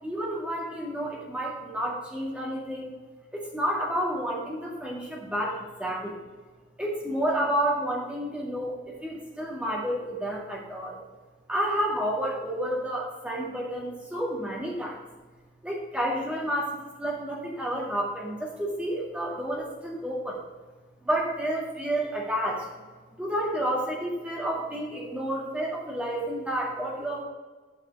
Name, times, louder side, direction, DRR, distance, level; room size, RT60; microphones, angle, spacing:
voice 1, 0.0-2.9 3.3-6.1 6.8-11.0 11.5-15.0 15.6-20.4 21.0-22.7 23.2-27.2, right 1 dB, 5° right, -3 dB, 2.1 m, -30 dB
9.2 x 5.8 x 5.3 m, 1.3 s
head